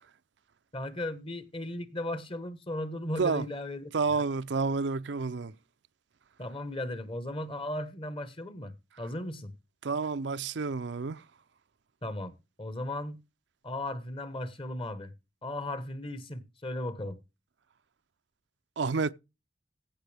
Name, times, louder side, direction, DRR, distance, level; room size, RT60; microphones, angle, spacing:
voice 1, 0.7-4.2 6.4-9.5 12.0-13.2 13.6-15.1 15.4-17.2, left 1 dB, 30° left, 1.2 m, -36 dB
voice 2, 3.9-5.5 9.8-11.2 18.8-19.1, right 4 dB, 65° right, 0.5 m, -29 dB
16.0 x 6.0 x 3.4 m
head